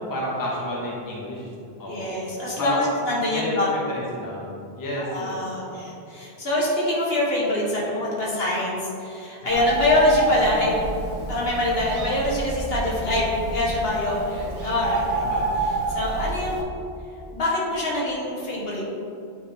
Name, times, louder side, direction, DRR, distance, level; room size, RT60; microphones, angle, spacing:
voice 1, 0.0-2.1 2.6-2.9 3.3-3.6 3.9-4.5 4.8-5.4 9.5-9.7 14.3-14.5 15.2-15.5, left 1 dB, 20° left, -4 dB, 0.9 m, -31 dB
voice 2, 1.9-3.7 5.0-10.7 11.3-13.3 13.5-15.3 15.9-16.7 17.3-18.8, left 1 dB, 60° left, -5 dB, 1.4 m, -24 dB
Bird, 9.5-16.6, right 2 dB, 90° right, 1.1 m, -29 dB
8.8 x 3.2 x 3.4 m, 2.6 s
omnidirectional pair, 1.1 m